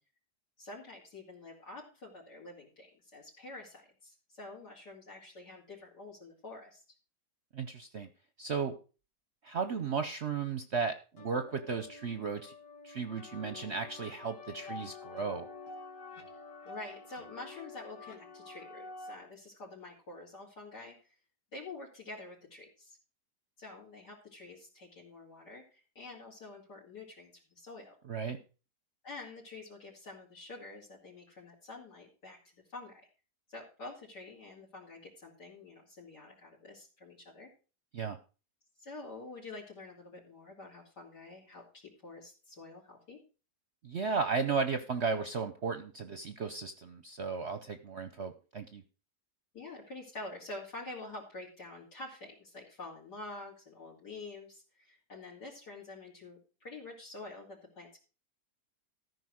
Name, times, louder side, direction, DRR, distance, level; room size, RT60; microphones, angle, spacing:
voice 1, 0.6-6.8 16.6-21.0 21.5-23.0 23.6-28.0 29.0-33.0 33.5-37.5 38.8-43.2 49.5-58.0, left 2 dB, 75° left, -4 dB, 3.4 m, -47 dB
voice 2, 7.5-8.1 8.4-8.7 9.4-12.5 12.8-15.5 28.1-28.4 37.9-38.2 43.8-48.8, right 5 dB, 50° right, 9 dB, 0.8 m, -35 dB
sound 1, 11.2-19.1, left 4 dB, 50° left, 1.8 m, -48 dB
14.0 x 5.3 x 6.3 m, 0.35 s
omnidirectional pair, 1.8 m